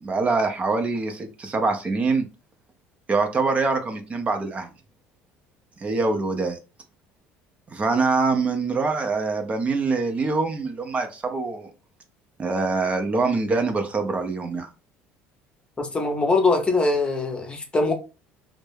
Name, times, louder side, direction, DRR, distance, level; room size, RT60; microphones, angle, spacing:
voice 1, 0.0-2.2 3.1-4.7 5.8-6.6 7.7-11.7 12.4-14.7, right 3 dB, 30° right, 0.5 m, -24 dB
voice 2, 15.8-17.9, left 3 dB, 20° left, 0.6 m, -22 dB
2.2 x 2.0 x 3.2 m
supercardioid pair, 95°, 5 cm